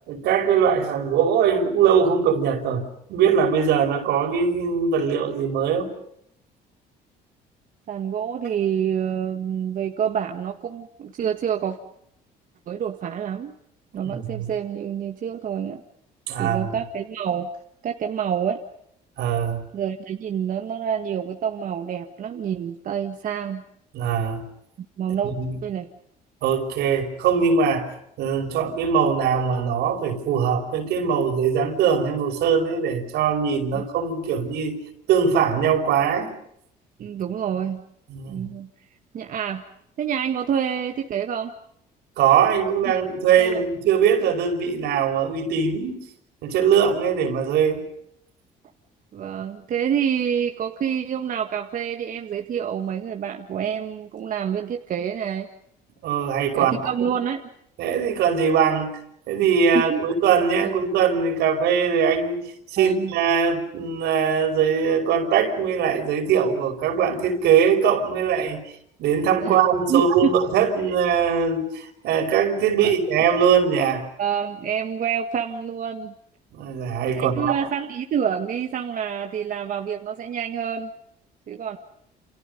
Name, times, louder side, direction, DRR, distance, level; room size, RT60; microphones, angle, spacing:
voice 1, 0.1-5.9 14.0-14.5 16.3-16.7 19.2-19.6 23.9-24.4 25.2-25.6 26.4-34.8 35.1-36.3 38.1-38.5 42.2-46.0 46.4-47.8 56.0-57.0 57.8-59.0 59.3-62.4 62.7-68.6 69.0-74.1 76.5-77.6, right 7 dB, 80° right, 5 dB, 5.5 m, -21 dB
voice 2, 7.9-11.8 12.7-13.5 13.9-15.8 16.4-17.5 17.8-18.6 19.7-23.6 24.8-25.3 25.6-25.9 33.7-33.8 37.0-37.8 38.3-38.7 39.1-39.6 40.0-41.5 42.9-43.0 43.4-43.6 49.1-55.5 56.5-57.4 59.9-60.0 60.6-60.7 62.8-63.1 69.4-69.6 69.9-70.1 72.8-72.9 74.2-76.1 77.1-80.9 81.5-81.8, right 8 dB, 55° right, 4 dB, 1.8 m, -27 dB
29.0 x 29.0 x 5.4 m, 0.73 s
cardioid pair, 110°, 17 cm